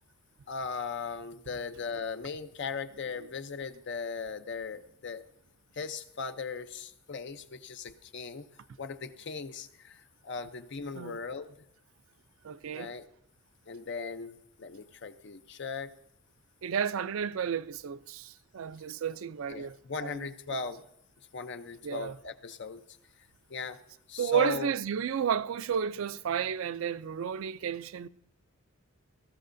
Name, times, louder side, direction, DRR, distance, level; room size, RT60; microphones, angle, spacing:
voice 1, 0.5-5.2 5.7-8.5 8.8-11.5 12.7-13.0 13.7-15.9 19.5-20.8 21.3-22.8 23.5-23.8 24.1-24.7, left 5 dB, 55° left, 0.6 m, -38 dB
voice 2, 12.4-12.9 16.6-20.3 21.8-22.2 24.2-28.1, right 8 dB, 70° right, 0.4 m, -32 dB
20.0 x 13.5 x 2.6 m
head